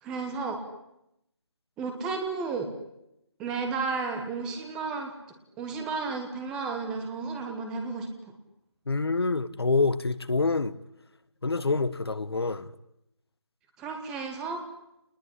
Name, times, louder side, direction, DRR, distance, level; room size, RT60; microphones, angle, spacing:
voice 1, 0.0-0.6 1.8-2.7 3.4-5.1 5.6-8.1 13.8-14.6, right 4 dB, 5° right, 4 dB, 1.2 m, -32 dB
voice 2, 8.9-10.8 11.4-12.7, left 3 dB, 65° left, 13 dB, 1.5 m, -26 dB
30.0 x 20.0 x 10.0 m, 0.86 s
figure-of-eight pair, 170°, 14 cm